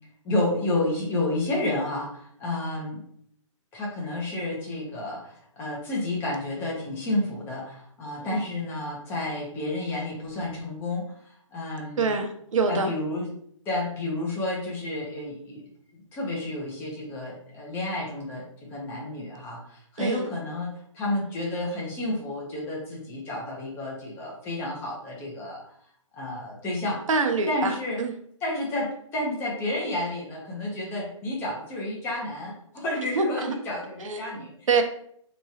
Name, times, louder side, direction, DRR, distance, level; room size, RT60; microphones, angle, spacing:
voice 1, 0.2-3.0 3.7-12.1 12.7-13.3 13.6-15.6 15.9-25.6 26.1-27.0 27.5-28.0 28.4-34.5, left 2 dB, 15° left, -3 dB, 0.8 m, -31 dB
voice 2, 12.0-12.9 20.0-20.3 27.1-28.1 33.0-33.5 34.0-34.8, right 4 dB, 80° right, 5 dB, 0.7 m, -26 dB
3.6 x 3.0 x 2.8 m, 0.67 s
hypercardioid pair, 155°, 17 cm